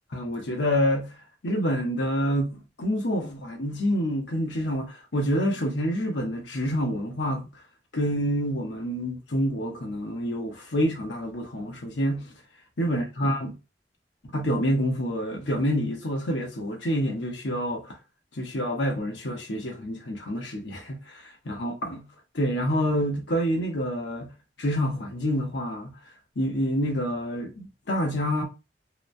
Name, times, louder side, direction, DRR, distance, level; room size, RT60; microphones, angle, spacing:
voice 1, 0.1-1.1 1.4-7.5 7.9-12.3 12.8-13.5 14.2-18.0 18.3-22.1 22.3-24.3 24.6-25.9 26.4-28.4, equal, 85° left, 0.8 m, -27 dB
3.0 x 2.1 x 2.5 m
head